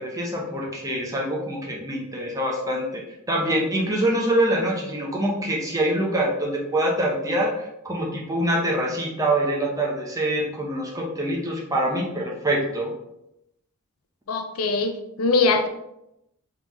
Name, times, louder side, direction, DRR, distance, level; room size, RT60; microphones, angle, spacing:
voice 1, 0.0-3.0 3.3-12.9, right 1 dB, 15° right, -2 dB, 0.8 m, -25 dB
voice 2, 14.3-15.7, left 3 dB, 75° left, 6 dB, 0.5 m, -22 dB
3.7 x 3.6 x 3.1 m, 0.86 s
head